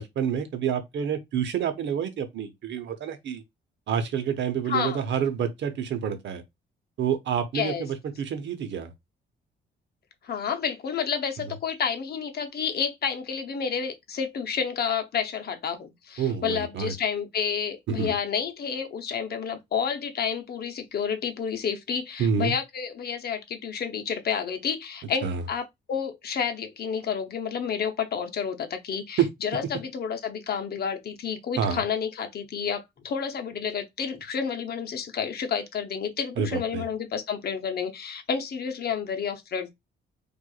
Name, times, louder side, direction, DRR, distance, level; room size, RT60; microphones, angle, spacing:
voice 1, 0.0-3.4 3.9-6.4 7.0-8.9 16.2-16.9 17.9-18.1 22.2-22.6 25.2-25.4 29.2-29.3 31.6-31.8 36.4-36.8, right 7 dB, 65° right, 0.8 m, -28 dB
voice 2, 4.7-5.0 7.5-7.9 10.2-39.7, left 7 dB, 50° left, 0.8 m, -30 dB
4.6 x 2.5 x 2.3 m
cardioid pair, 90°, 20 cm